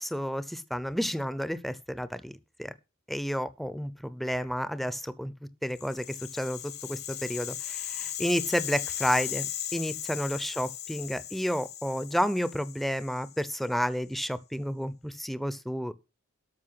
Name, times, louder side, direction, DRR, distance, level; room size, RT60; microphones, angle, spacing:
voice 1, 0.0-2.7 3.1-5.3 5.6-15.9, equal, ahead, 0.6 m, -31 dB
Rattle (instrument), 5.7-13.9, left 11 dB, 55° left, 1.1 m, -37 dB
13.0 x 5.4 x 5.7 m
head